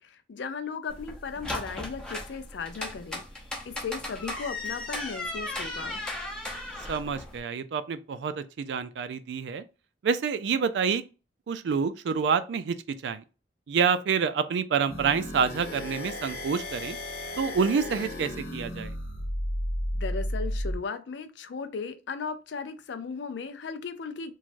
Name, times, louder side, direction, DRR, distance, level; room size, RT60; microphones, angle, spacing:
voice 1, 0.0-3.2 3.7-6.0 19.9-24.3, left 5 dB, 80° left, 0.4 m, -36 dB
sound 1, 0.9-7.4, left 2 dB, 5° left, 0.6 m, -36 dB
voice 2, 6.9-9.6 10.0-11.0 11.5-13.2 13.7-17.0 17.4-18.9, right 6 dB, 80° right, 0.3 m, -27 dB
sound 2, 14.9-20.8, left 1 dB, 60° left, 0.8 m, -33 dB
3.1 x 2.3 x 2.5 m
head